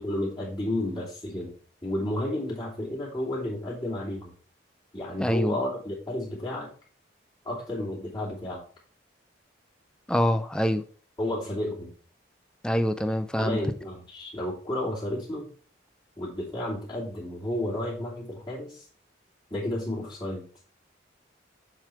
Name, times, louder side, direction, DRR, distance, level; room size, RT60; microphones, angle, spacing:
voice 1, 0.0-1.5 1.8-4.3 4.9-6.7 7.4-8.6 11.2-11.9 13.4-15.5 16.2-18.9 19.5-20.4, left 1 dB, 25° left, -6 dB, 2.6 m, -32 dB
voice 2, 5.2-5.6 10.1-10.8 12.6-13.6, equal, 5° left, 9 dB, 0.4 m, -25 dB
7.4 x 3.8 x 4.7 m, 0.42 s
head